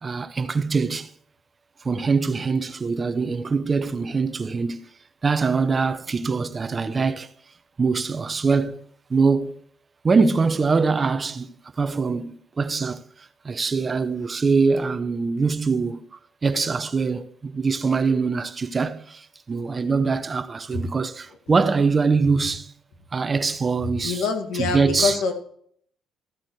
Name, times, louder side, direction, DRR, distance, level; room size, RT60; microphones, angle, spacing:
voice 1, 0.0-1.1 1.8-4.9 5.2-7.3 7.8-8.8 9.1-9.6 10.0-22.7 23.1-24.2 24.6-25.2, right 4 dB, 30° right, 0.7 m, -23 dB
voice 2, 24.0-25.3, left 4 dB, 85° left, 1.9 m, -25 dB
14.5 x 8.8 x 3.1 m
cardioid pair, 120°, 0 cm